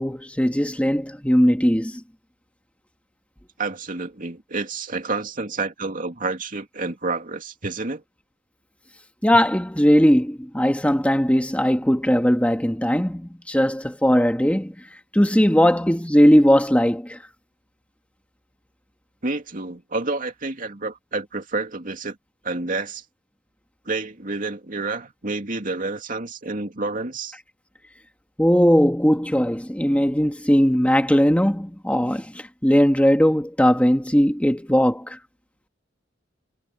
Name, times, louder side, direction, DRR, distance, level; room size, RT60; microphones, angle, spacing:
voice 1, 0.0-2.0 9.2-17.2 28.4-35.2, equal, 5° left, 1.8 m, -19 dB
voice 2, 3.6-8.0 19.2-22.2 22.4-23.0 23.9-27.4, right 3 dB, 45° right, 2.6 m, -29 dB
head